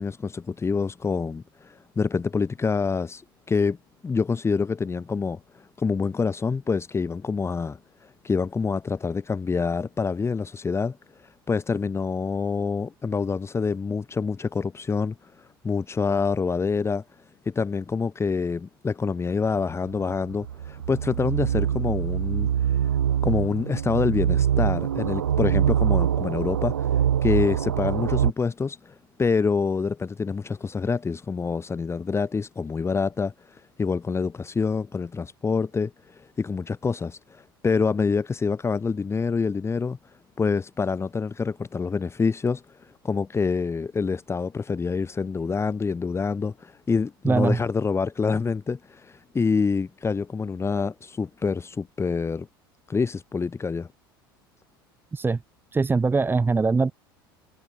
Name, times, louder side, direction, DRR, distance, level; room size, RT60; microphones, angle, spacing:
voice 1, 0.0-3.2 3.5-3.8 4.0-17.0 17.5-22.9 23.2-40.0 40.4-52.5 52.9-53.9, left 5 dB, 20° left, 3.9 m, -26 dB
sound 1, 19.5-28.3, right 9 dB, 85° right, 0.5 m, -24 dB
voice 2, 47.2-47.6 55.1-55.4 55.7-56.9, right 4 dB, 15° right, 2.2 m, -22 dB
figure-of-eight pair, 75°, 12 cm